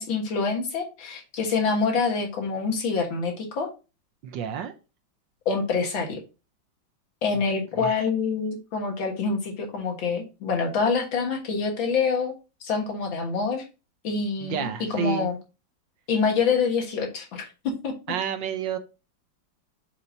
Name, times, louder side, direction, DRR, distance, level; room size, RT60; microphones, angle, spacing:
voice 1, 0.0-3.7 5.5-6.2 7.2-12.3 12.6-13.6 14.0-14.7 14.9-15.4 16.1-17.5 17.8-17.9, left 5 dB, 80° left, 2 dB, 2.3 m, -26 dB
voice 2, 4.2-4.7 7.3-7.4 7.7-8.0 14.4-15.3 18.1-18.8, right 9 dB, 75° right, 9 dB, 1.5 m, -30 dB
6.9 x 5.1 x 2.7 m, 0.30 s
omnidirectional pair, 2.1 m